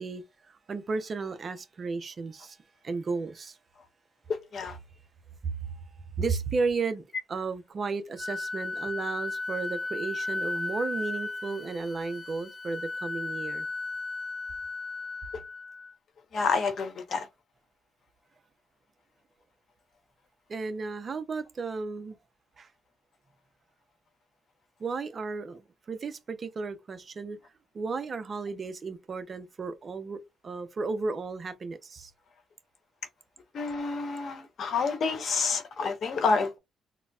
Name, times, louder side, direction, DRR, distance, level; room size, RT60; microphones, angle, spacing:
voice 1, 0.0-2.6 2.8-3.6 6.2-7.0 7.3-13.6 20.5-22.2 22.6-22.7 24.8-27.4 27.7-32.1, right 4 dB, 40° right, 0.5 m, -34 dB
Wind instrument woodwind instrument, 8.2-15.9, left 3 dB, 30° left, 0.4 m, -35 dB
voice 2, 16.3-17.3 33.5-36.6, left 4 dB, 55° left, 0.8 m, -28 dB
3.9 x 2.0 x 2.3 m
cardioid pair, 90°, 0 cm